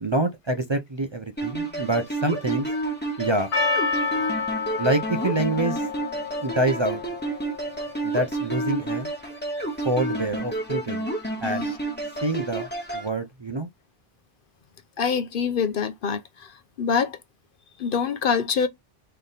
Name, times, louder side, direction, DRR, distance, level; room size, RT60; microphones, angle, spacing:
voice 1, 0.0-2.7 3.2-3.5 4.8-5.9 6.4-7.0 8.0-9.1 9.8-11.1 11.4-11.7 12.2-12.7 12.9-13.7, right 2 dB, 35° right, 0.5 m, -26 dB
sound 1, 1.4-13.1, right 2 dB, 10° left, 1.3 m, -30 dB
Percussion, 3.5-8.1, left 5 dB, 80° left, 1.2 m, -29 dB
voice 2, 15.0-16.2 16.8-17.2 17.8-18.7, left 6 dB, 60° left, 0.8 m, -24 dB
3.9 x 3.3 x 4.0 m
omnidirectional pair, 1.0 m